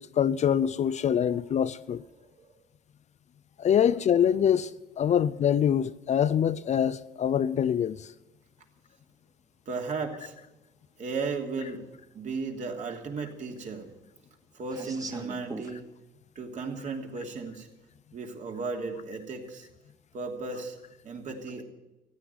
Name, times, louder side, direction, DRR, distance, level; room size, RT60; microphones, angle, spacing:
voice 1, 0.0-2.0 3.6-4.7 5.0-8.1, left 9 dB, 45° left, 0.5 m, -24 dB
voice 2, 0.9-2.5 3.8-4.1 5.0-5.3 9.7-10.3 11.0-13.9 14.5-15.8 16.3-17.7 18.1-19.7 20.1-20.8 21.0-21.6, right 4 dB, 45° right, 2.9 m, -36 dB
sound 1, 9.1-9.2 10.5-10.6 11.1-11.2 11.5-12.2 12.5-15.8, right 2 dB, 20° right, 1.9 m, -43 dB
15.0 x 9.9 x 9.6 m
cardioid pair, 110°, 17 cm